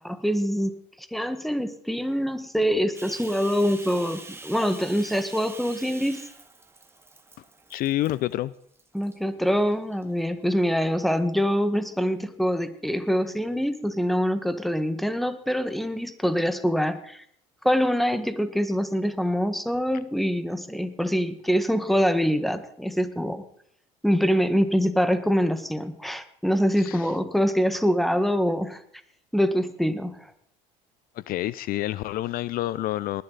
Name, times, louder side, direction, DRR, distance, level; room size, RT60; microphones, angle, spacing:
voice 1, 0.0-0.7 1.0-6.2 8.9-17.2 17.6-23.4 24.0-28.8 29.3-30.2, equal, ahead, 10 dB, 1.5 m, -24 dB
Bathtub (filling or washing), 2.9-8.3 8.8-9.2 9.7-10.5, right 2 dB, 15° right, 2.0 m, -45 dB
voice 2, 7.7-8.5 26.8-27.1 31.1-33.2, left 15 dB, 60° left, 19 dB, 0.5 m, -28 dB
20.0 x 11.5 x 4.0 m, 0.69 s
supercardioid pair, 90°, 17 cm